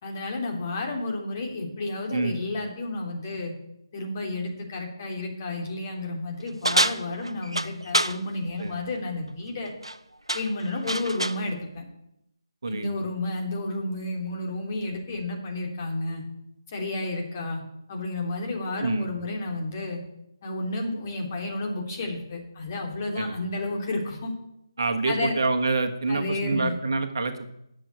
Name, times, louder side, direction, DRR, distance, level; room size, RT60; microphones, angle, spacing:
voice 1, 0.0-3.5 3.9-9.7 10.3-11.8 12.7-16.2 16.7-17.6 17.9-20.0 20.4-24.3 25.0-25.4 26.1-26.7, left 2 dB, 30° left, 1 dB, 3.3 m, -31 dB
sound 1, 6.6-8.2 9.7-10.0 10.3-11.4, right 1 dB, 90° right, 0.8 m, -26 dB
voice 2, 24.8-27.5, right 3 dB, 55° right, 6 dB, 1.4 m, -27 dB
10.0 x 7.6 x 9.3 m, 0.82 s
figure-of-eight pair, 150°, 3 cm